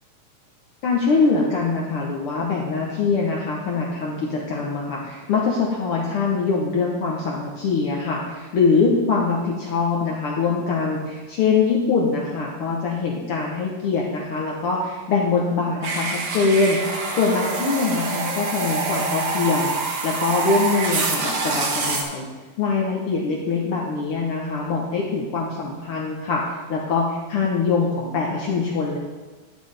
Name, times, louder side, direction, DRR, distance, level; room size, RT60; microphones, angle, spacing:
voice 1, 0.8-19.7 20.0-22.3 22.6-26.4 26.7-29.0, left 4 dB, 70° left, -2 dB, 1.3 m, -23 dB
sound 1, 15.8-22.0, right 3 dB, 60° right, 1.4 m, -26 dB
11.0 x 7.9 x 3.4 m, 1.3 s
omnidirectional pair, 3.7 m